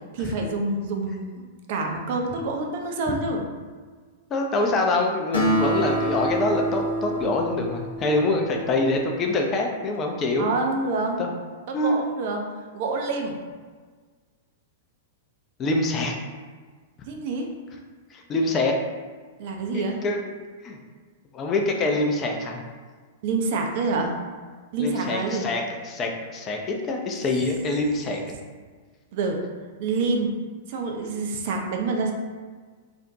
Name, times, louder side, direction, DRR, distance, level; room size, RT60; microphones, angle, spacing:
voice 1, 0.1-1.4 1.7-3.4 10.4-11.2 11.7-12.4 12.7-13.4 17.0-17.5 19.4-20.0 23.2-24.2 24.7-25.5 29.1-29.5 29.8-30.4 30.7-32.1, right 3 dB, 50° right, 2 dB, 0.3 m, -27 dB
voice 2, 4.3-10.5 11.2-11.3 11.7-12.0 15.6-16.1 18.1-18.8 19.7-20.2 20.6-20.8 21.3-22.6 24.8-28.4, left 2 dB, 30° left, 2 dB, 0.4 m, -25 dB
Acoustic guitar, 5.3-9.1, right 1 dB, 80° left, 0.5 m, -27 dB
2.4 x 2.1 x 2.5 m, 1.5 s
figure-of-eight pair, 100°, 0 cm